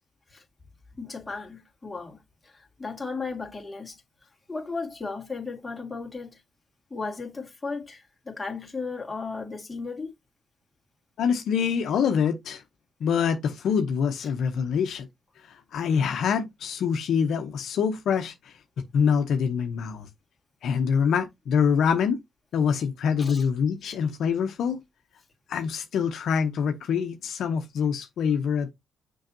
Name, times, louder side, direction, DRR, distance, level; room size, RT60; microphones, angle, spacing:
voice 1, 1.0-4.0 4.5-6.4 6.9-10.1 23.2-23.4 23.8-23.9, left 4 dB, 15° left, 2.4 m, -35 dB
voice 2, 11.2-12.6 13.0-15.1 15.4-18.6 18.9-20.1 20.6-22.2 22.5-24.8 25.5-28.7, left 7 dB, 70° left, 0.9 m, -25 dB
6.4 x 5.6 x 2.8 m
cardioid pair, 90°, 0 cm